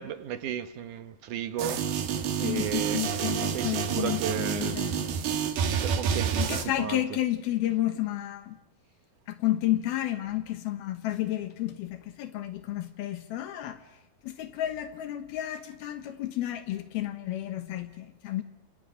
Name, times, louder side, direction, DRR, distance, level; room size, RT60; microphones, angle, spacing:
voice 1, 0.0-2.0 2.4-4.8 5.8-7.0, right 10 dB, 65° right, 2.3 m, -35 dB
sound 1, 1.6-6.6, right 7 dB, 80° right, 3.9 m, -29 dB
voice 2, 2.4-5.1 6.4-8.6 9.3-13.8 14.2-18.4, left 14 dB, 80° left, 3.1 m, -31 dB
28.5 x 28.0 x 6.5 m
omnidirectional pair, 4.4 m